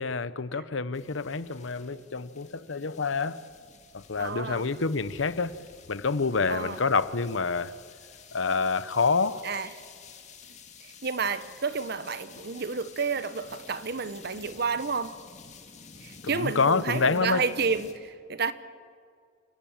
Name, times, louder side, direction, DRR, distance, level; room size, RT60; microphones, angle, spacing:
voice 1, 0.0-3.4 3.9-5.6 5.9-7.7 8.3-9.4 16.2-17.4, left 4 dB, 85° left, 0.9 m, -27 dB
sound 1, 0.9-17.9, left 5 dB, 40° left, 2.2 m, -51 dB
voice 2, 4.2-4.7 6.5-6.8 9.4-9.7 11.0-15.1 16.0-18.5, right 5 dB, 55° right, 1.0 m, -30 dB
27.0 x 15.5 x 8.9 m
head